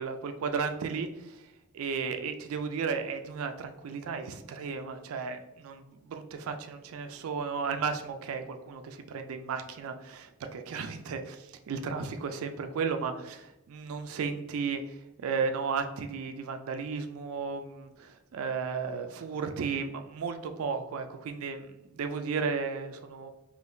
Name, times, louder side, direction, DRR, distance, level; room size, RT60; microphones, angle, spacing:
voice 1, 0.0-1.4 1.7-23.3, right 5 dB, 70° right, 7 dB, 0.3 m, -34 dB
3.5 x 2.5 x 2.5 m, 0.96 s
head